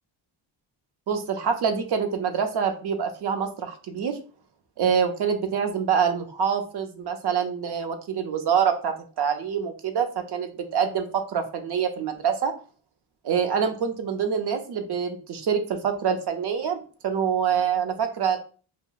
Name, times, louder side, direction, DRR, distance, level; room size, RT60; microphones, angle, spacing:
voice 1, 1.1-4.2 4.8-12.5 13.2-18.4, right 7 dB, 55° right, 7 dB, 0.7 m, -26 dB
2.7 x 2.2 x 3.8 m, 0.38 s
cardioid pair, 115°, 48 cm